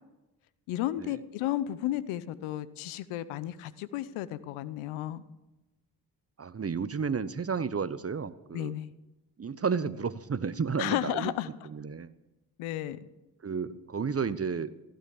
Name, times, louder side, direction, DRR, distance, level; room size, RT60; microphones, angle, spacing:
voice 1, 0.7-5.2 8.5-8.9 10.8-11.5 12.6-13.0, left 13 dB, 75° left, 16 dB, 0.9 m, -33 dB
voice 2, 6.4-8.7 9.4-11.3 11.7-12.1 13.4-14.7, right 5 dB, 30° right, 16 dB, 0.9 m, -32 dB
15.5 x 11.5 x 7.1 m, 1.0 s
hypercardioid pair, 40°, 49 cm